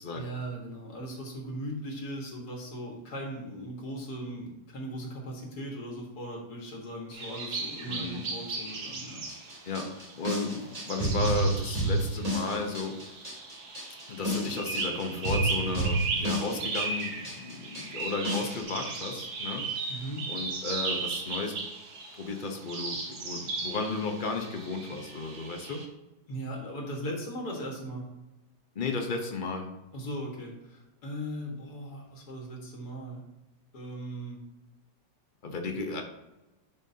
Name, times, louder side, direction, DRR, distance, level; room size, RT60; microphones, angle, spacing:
voice 1, 0.1-9.2 19.9-20.2 26.3-28.1 29.9-33.2 33.7-34.4, equal, 60° left, 0 dB, 2.1 m, -38 dB
sound 1, 7.1-25.9, right 4 dB, 60° right, 1.6 m, -37 dB
voice 2, 7.9-8.2 9.6-12.9 14.1-21.6 22.1-25.8 28.7-29.7 35.4-36.0, left 3 dB, 35° left, 4 dB, 0.9 m, -34 dB
sound 2, 9.3-18.6, right 1 dB, 20° right, 2.8 m, -31 dB
11.0 x 5.5 x 2.8 m, 1.0 s
omnidirectional pair, 1.9 m